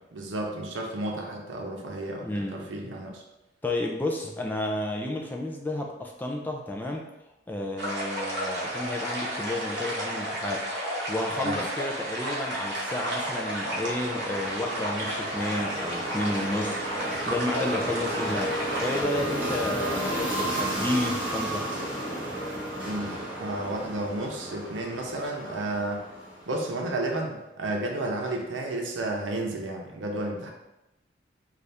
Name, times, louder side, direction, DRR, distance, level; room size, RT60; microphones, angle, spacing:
voice 1, 0.1-3.2 11.4-11.6 22.8-23.1 23.4-26.0 26.5-30.5, right 2 dB, 90° right, 1 dB, 0.7 m, -32 dB
voice 2, 2.2-2.6 3.6-7.0 7.5-10.7 11.1-16.8 17.3-21.7, left 1 dB, 10° left, 0 dB, 0.3 m, -31 dB
sound 1, 7.8-19.0, right 1 dB, 55° right, 0.9 m, -32 dB
sound 2, 12.5-26.9, right 1 dB, 10° right, 1.2 m, -33 dB
4.0 x 2.4 x 3.3 m, 0.93 s
head